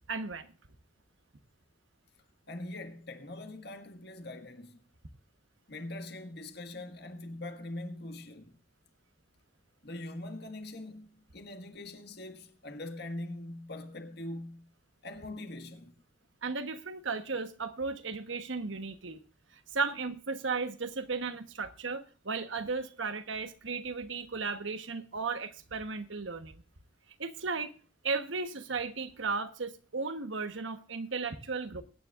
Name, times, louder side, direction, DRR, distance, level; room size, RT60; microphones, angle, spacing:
voice 1, 0.1-0.5 16.4-19.2 19.7-26.5 27.2-27.7 28.0-31.8, right 4 dB, 75° right, 1.2 m, -35 dB
voice 2, 2.5-4.8 5.7-8.6 9.8-14.7 15.0-15.9, left 1 dB, 55° left, 1.7 m, -42 dB
22.5 x 9.7 x 2.5 m
head